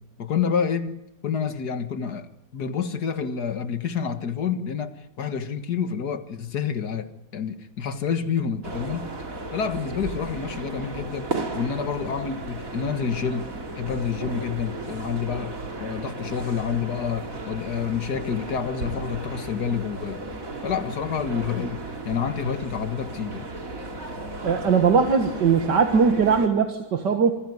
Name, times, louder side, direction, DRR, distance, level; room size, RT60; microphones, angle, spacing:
voice 1, 0.2-9.1 9.5-13.5 13.8-20.2 20.6-23.5, left 7 dB, 65° left, 2.1 m, -28 dB
sound 1, 8.6-26.5, right 2 dB, 50° right, 3.1 m, -35 dB
voice 2, 24.4-27.3, right 6 dB, 85° right, 2.2 m, -20 dB
26.0 x 15.0 x 9.5 m
omnidirectional pair, 1.8 m